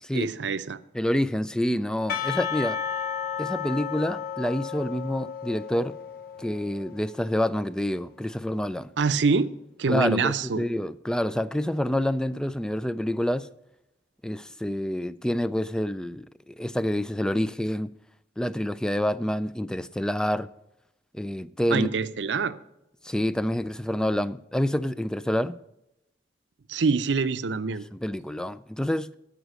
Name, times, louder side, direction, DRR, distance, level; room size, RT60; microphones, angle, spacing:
voice 1, 0.1-0.8 9.0-9.5 9.8-10.6 21.7-22.6 26.7-27.9, right 4 dB, 90° right, 0.6 m, -25 dB
voice 2, 0.9-2.8 3.4-6.0 6.4-8.9 9.9-13.5 14.2-17.9 18.4-20.5 21.1-21.9 23.0-25.6 27.9-29.2, left 1 dB, 5° left, 0.3 m, -27 dB
Percussion / Church bell, 2.1-7.2, left 8 dB, 55° left, 1.0 m, -33 dB
13.0 x 5.1 x 6.4 m
head